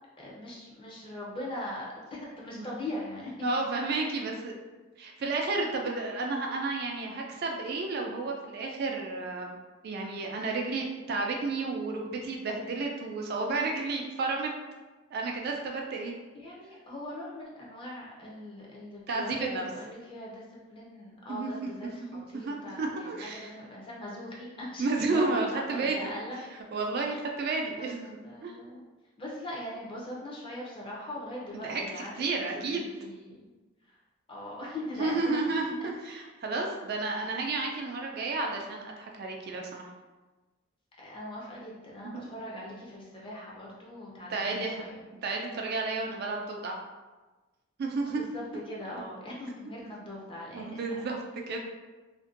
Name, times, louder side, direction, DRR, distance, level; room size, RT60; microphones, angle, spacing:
voice 1, 0.2-3.3 16.3-20.4 20.7-22.0 22.3-26.4 27.1-27.2 27.7-27.9 28.2-28.8 29.2-32.2 32.5-33.5 34.3-35.6 35.8-36.3 41.0-45.0 48.1-51.1, left 1 dB, 25° left, -4 dB, 0.5 m, -41 dB
voice 2, 3.4-4.5 5.0-9.6 9.8-14.5 15.1-16.1 19.1-19.6 21.3-21.7 22.1-23.5 24.8-26.1 26.7-28.2 28.4-28.5 31.5-31.8 32.2-32.8 35.0-39.9 42.0-42.3 44.3-44.9 45.2-46.8 47.8-48.2 50.5-51.2 51.5-51.6, right 3 dB, 50° right, 1 dB, 0.3 m, -32 dB
2.5 x 2.2 x 2.4 m, 1.2 s
head